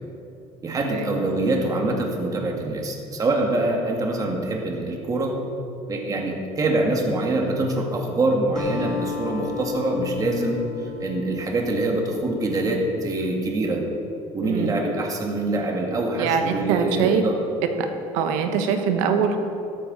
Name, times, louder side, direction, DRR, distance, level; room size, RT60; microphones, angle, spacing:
voice 1, 0.6-5.3 5.9-10.6 11.0-13.8 14.3-17.4, right 2 dB, 30° right, 0 dB, 2.1 m, -24 dB
Acoustic guitar, 8.6-13.0, left 6 dB, 5° left, 2.3 m, -35 dB
voice 2, 14.4-14.7 16.2-17.2 17.8-17.9 18.1-19.4, right 7 dB, 90° right, 6 dB, 1.3 m, -23 dB
13.5 x 13.0 x 4.2 m, 2.7 s
cardioid pair, 130°, 13 cm